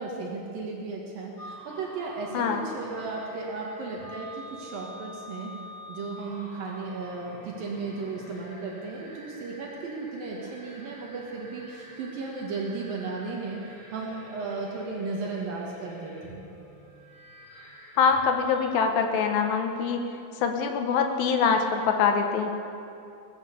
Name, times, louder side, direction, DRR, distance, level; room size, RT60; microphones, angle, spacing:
voice 1, 0.0-5.5 5.9-16.4, right 3 dB, 65° right, -1 dB, 3.0 m, -35 dB
sound 1, 1.4-18.7, equal, 35° left, 4.0 m, -47 dB
voice 2, 18.0-20.1 20.4-22.5, left 6 dB, 75° left, 5 dB, 2.6 m, -24 dB
20.5 x 8.8 x 7.0 m, 2.7 s
omnidirectional pair, 4.7 m